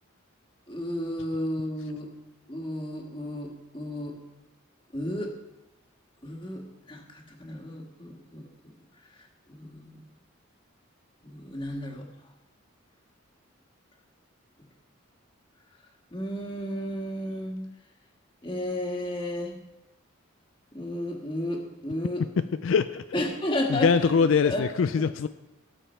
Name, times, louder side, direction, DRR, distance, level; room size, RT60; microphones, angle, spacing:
voice 1, 0.7-2.1 2.5-4.2 4.9-5.3 6.2-8.8 9.5-10.0 11.2-12.1 16.1-17.6 18.4-19.5 20.7-22.2 23.1-24.7 25.0-25.1, left 1 dB, 25° left, 1 dB, 1.6 m, -33 dB
voice 2, 22.4-23.0 23.7-25.3, left 5 dB, 70° left, 11 dB, 0.4 m, -23 dB
17.5 x 7.0 x 4.4 m, 0.98 s
head